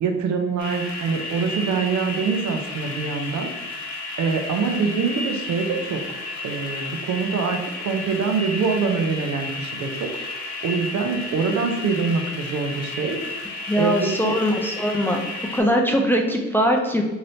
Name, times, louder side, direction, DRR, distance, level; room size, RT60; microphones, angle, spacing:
voice 1, 0.0-3.5 4.2-6.0 6.4-10.1 10.6-13.2 13.8-14.3, right 5 dB, 70° right, 5 dB, 0.6 m, -24 dB
sound 1, 0.6-15.6, left 2 dB, 65° left, 0.9 m, -32 dB
voice 2, 13.7-15.2 15.5-17.0, equal, 5° left, 1 dB, 0.3 m, -21 dB
3.2 x 2.8 x 2.6 m, 1.1 s
cardioid pair, 90°, 30 cm